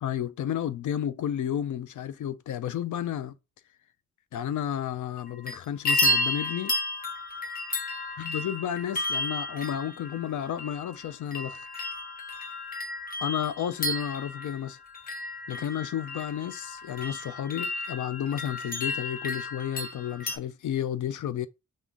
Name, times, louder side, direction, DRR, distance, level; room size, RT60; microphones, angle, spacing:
voice 1, 0.0-3.3 4.3-6.7 8.2-11.7 13.2-14.8 15.5-21.5, left 10 dB, 70° left, 0.5 m, -32 dB
sound 1, 5.2-5.6 5.9-20.4, left 1 dB, 30° left, 0.9 m, -32 dB
5.5 x 2.5 x 3.6 m
wide cardioid pair, 165°, 32 cm